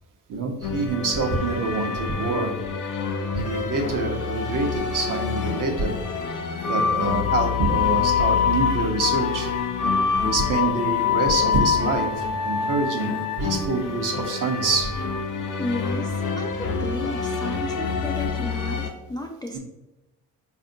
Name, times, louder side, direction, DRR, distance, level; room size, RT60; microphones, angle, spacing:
voice 1, 0.3-2.5 3.3-5.9 6.7-9.5 10.2-14.9 19.5-19.6, right 3 dB, 50° right, 2 dB, 0.8 m, -26 dB
sound 1, 0.6-18.9, left 6 dB, 50° left, 0.6 m, -26 dB
voice 2, 15.6-19.6, left 1 dB, 10° left, 1 dB, 0.3 m, -33 dB
4.2 x 2.5 x 2.6 m, 1.0 s
supercardioid pair, 55°, 41 cm